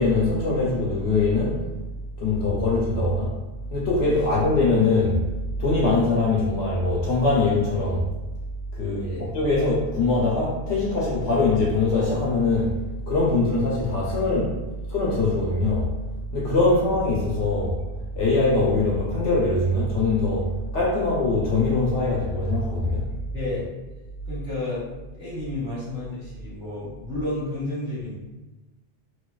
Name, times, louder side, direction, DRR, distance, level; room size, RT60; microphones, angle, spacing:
voice 1, 0.0-1.6 2.2-3.3 3.7-5.2 5.6-8.0 8.7-12.8 13.1-14.5 14.9-15.9 16.3-17.7 18.2-20.5 20.7-23.1, left 3 dB, 75° left, -4 dB, 0.8 m, -22 dB
voice 2, 23.3-23.7 24.3-24.9 25.1-28.2, left 2 dB, 10° left, -11 dB, 1.3 m, -31 dB
2.6 x 2.2 x 2.2 m, 1.1 s
omnidirectional pair, 1.2 m